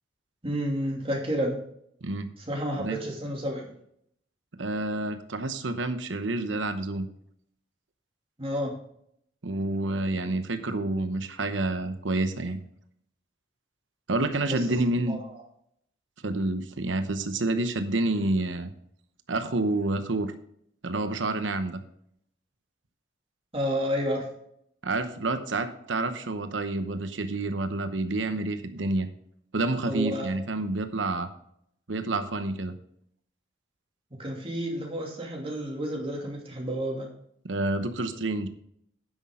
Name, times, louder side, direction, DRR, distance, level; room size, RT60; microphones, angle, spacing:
voice 1, 0.4-1.6 2.5-3.7 8.4-8.7 14.5-14.6 15.1-15.3 23.5-24.3 29.8-30.3 34.2-37.1, equal, 30° right, -1 dB, 2.7 m, -30 dB
voice 2, 2.0-2.3 2.8-3.0 4.6-7.1 9.4-12.6 14.1-15.2 16.2-18.7 19.3-20.3 20.8-21.8 24.8-29.1 29.5-31.3 31.9-32.7 37.4-38.5, right 2 dB, 85° right, 9 dB, 0.9 m, -28 dB
9.9 x 8.3 x 3.8 m, 0.69 s
head